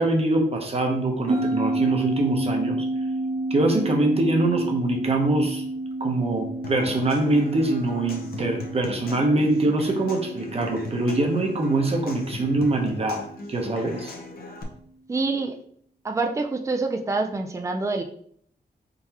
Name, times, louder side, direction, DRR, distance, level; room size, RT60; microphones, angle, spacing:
voice 1, 0.0-2.9 3.5-5.6 6.0-13.2 13.5-14.1, right 2 dB, 35° right, 2 dB, 0.9 m, -23 dB
sound 1, 1.3-14.0, right 2 dB, 65° right, 1.0 m, -31 dB
Human voice / Acoustic guitar / Percussion, 6.6-14.6, left 2 dB, 60° left, 0.8 m, -40 dB
voice 2, 15.1-15.6 16.0-18.0, right 3 dB, 15° right, 5 dB, 0.4 m, -26 dB
4.2 x 3.8 x 2.9 m, 0.63 s
wide cardioid pair, 130°, 17 cm